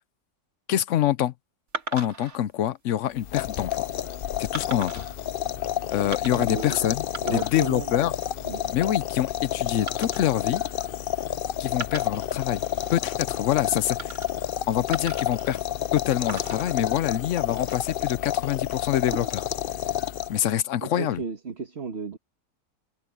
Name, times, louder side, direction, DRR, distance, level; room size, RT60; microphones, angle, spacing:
voice 1, 0.7-1.3 1.9-3.9 4.4-5.1 5.9-8.1 8.7-10.6 11.6-12.6 12.9-14.2 14.7-15.6 15.9-19.4 20.3-21.2, left 12 dB, 65° left, 0.9 m, -26 dB
sound 1, 1.7-2.4 3.1-3.4 4.5-5.1 6.1-6.7 7.0-7.7 8.0-8.4 9.9-11.3 11.7-13.0 14.0-14.6 14.9-16.0 16.3-18.0 18.9-19.5, right 3 dB, 70° right, 2.5 m, -39 dB
sound 2, 3.2-20.6, left 11 dB, 90° left, 0.4 m, -30 dB
voice 2, 6.3-6.9 7.2-8.0 8.4-8.8 20.8-22.2, right 5 dB, 45° right, 1.6 m, -34 dB
omnidirectional pair, 1.6 m